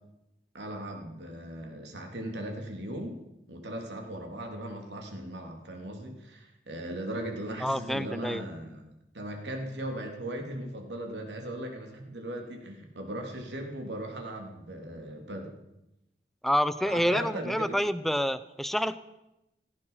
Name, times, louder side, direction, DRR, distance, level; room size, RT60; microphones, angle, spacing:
voice 1, 0.5-3.2 3.5-8.9 9.1-15.5 16.8-17.8, right 1 dB, 85° right, 3 dB, 3.3 m, -38 dB
voice 2, 7.6-8.4 16.4-19.0, equal, ahead, 13 dB, 0.6 m, -28 dB
17.5 x 14.0 x 5.7 m, 0.90 s
head